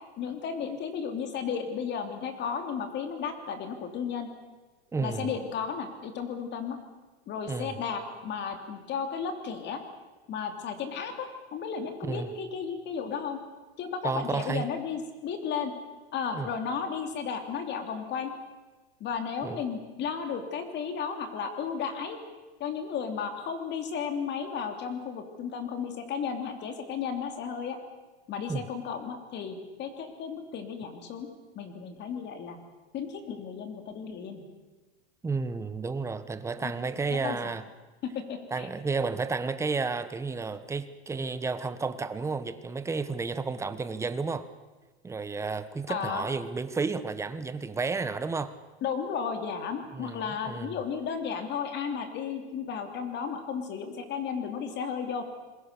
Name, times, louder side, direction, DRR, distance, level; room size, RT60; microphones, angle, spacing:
voice 1, 0.2-4.3 5.0-6.8 7.3-9.8 10.3-13.4 13.8-15.7 16.1-18.3 19.0-22.2 22.6-27.8 28.3-31.3 31.5-32.6 32.9-34.4 36.6-36.7 37.2-37.5 38.0-38.7 45.9-46.3 48.8-55.2, left 6 dB, 30° left, 7 dB, 3.1 m, -34 dB
voice 2, 4.9-5.3 7.5-7.7 12.0-12.3 14.0-14.6 16.3-16.5 19.4-19.6 28.5-28.6 35.2-37.6 38.5-44.5 45.0-48.5 49.9-50.7, right 4 dB, 10° right, 12 dB, 0.9 m, -32 dB
26.5 x 21.0 x 6.9 m, 1.2 s
supercardioid pair, 145°, 34 cm